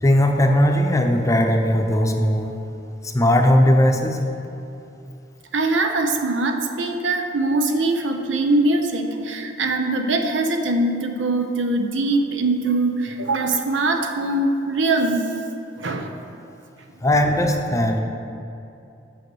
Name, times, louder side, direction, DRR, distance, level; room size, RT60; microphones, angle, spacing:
voice 1, 0.0-2.5 3.0-4.2 17.0-18.0, left 1 dB, 15° left, 3 dB, 0.7 m, -18 dB
voice 2, 5.5-15.3 15.7-16.1, right 2 dB, 80° right, 5 dB, 0.8 m, -22 dB
8.1 x 6.5 x 6.2 m, 2.7 s
head